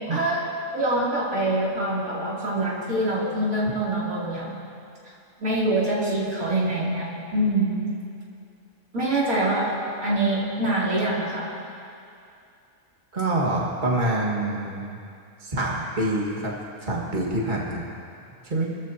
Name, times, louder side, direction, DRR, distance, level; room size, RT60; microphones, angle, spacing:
voice 1, 0.1-4.6 5.4-7.9 8.9-9.7 10.0-11.5, right 1 dB, 90° right, -7 dB, 3.7 m, -25 dB
voice 2, 13.1-14.9 15.4-16.5 16.9-17.9 18.5-18.7, right 1 dB, 35° right, -3 dB, 2.1 m, -26 dB
26.0 x 14.0 x 2.9 m, 2.5 s
omnidirectional pair, 1.5 m